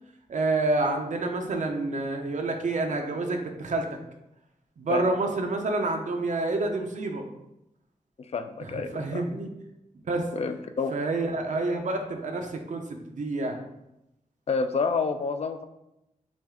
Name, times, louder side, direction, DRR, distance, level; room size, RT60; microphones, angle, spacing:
voice 1, 0.3-4.0 4.8-7.2 8.6-9.5 10.1-10.3 10.9-13.7, right 2 dB, 60° right, 4 dB, 0.7 m, -28 dB
voice 2, 8.3-9.2 10.3-11.0 14.5-15.6, left 4 dB, 50° left, 8 dB, 0.4 m, -28 dB
6.0 x 2.4 x 3.6 m, 0.88 s
wide cardioid pair, 155°, 14 cm